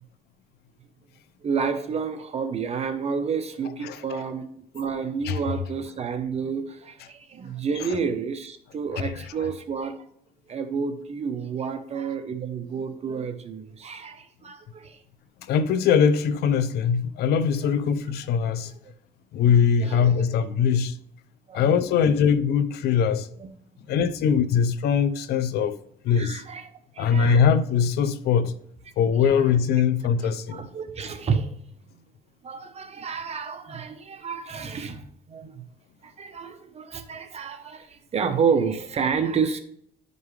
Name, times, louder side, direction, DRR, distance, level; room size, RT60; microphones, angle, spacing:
voice 1, 1.4-10.0 10.5-15.0 17.6-17.7 19.8-20.3 21.5-21.7 22.1-22.2 23.4-23.5 23.9-24.0 26.1-27.4 29.3-29.4 30.5-31.5 32.4-35.6 36.0-39.6, right 6 dB, 40° right, 0.8 m, -30 dB
voice 2, 3.8-4.2 5.2-5.4 7.8-7.9 15.5-18.7 19.3-20.9 21.5-23.3 23.9-25.8 26.0-26.4 27.0-28.5 29.0-30.6, left 7 dB, 70° left, 0.7 m, -22 dB
10.5 x 5.4 x 3.2 m
cardioid pair, 110°, 17 cm